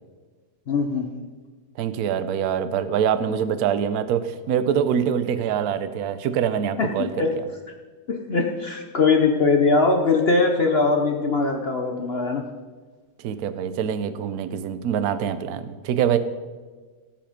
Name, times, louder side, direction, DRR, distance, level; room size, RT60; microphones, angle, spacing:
voice 1, 0.7-1.2 6.8-6.9 7.2-7.3 8.1-12.4, left 4 dB, 50° left, 3 dB, 0.8 m, -21 dB
voice 2, 1.8-7.4 13.2-16.2, right 8 dB, 65° right, 12 dB, 1.0 m, -24 dB
17.5 x 5.8 x 5.1 m, 1.4 s
omnidirectional pair, 2.0 m